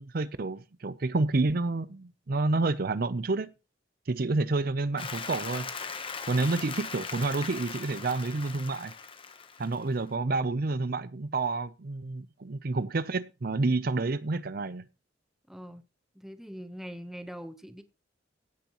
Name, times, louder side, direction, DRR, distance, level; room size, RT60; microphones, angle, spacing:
voice 1, 0.0-3.5 4.1-5.7 6.3-8.9 9.6-14.8, right 3 dB, 50° right, 0.6 m, -29 dB
Applause, 5.0-10.0, left 5 dB, 30° left, 0.9 m, -39 dB
voice 2, 15.5-15.9 16.1-17.8, equal, ahead, 0.9 m, -42 dB
16.5 x 9.3 x 3.0 m
head